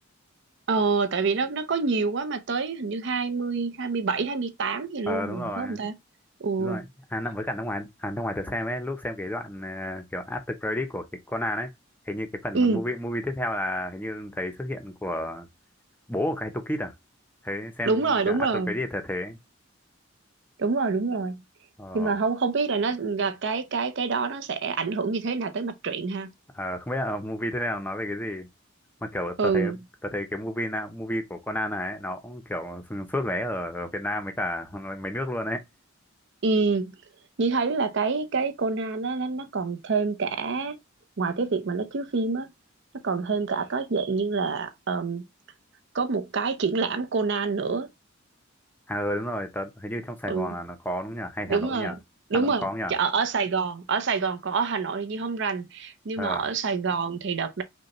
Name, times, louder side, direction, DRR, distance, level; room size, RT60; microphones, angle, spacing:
voice 1, 0.7-5.9 6.4-6.9 12.5-12.8 17.8-18.7 20.6-21.4 21.9-26.3 29.4-29.8 36.4-36.9 37.4-40.8 41.2-42.5 42.9-45.2 45.9-47.9 50.3-50.5 51.5-52.0 52.3-57.6, right 4 dB, 60° right, 0.6 m, -27 dB
voice 2, 5.1-5.8 6.6-11.7 12.1-15.5 16.1-16.9 17.4-19.4 21.8-22.1 26.5-28.5 29.0-29.7 30.0-35.6 48.9-51.9 52.3-52.9 56.2-56.4, left 1 dB, 10° left, 0.5 m, -31 dB
5.1 x 2.2 x 2.9 m
head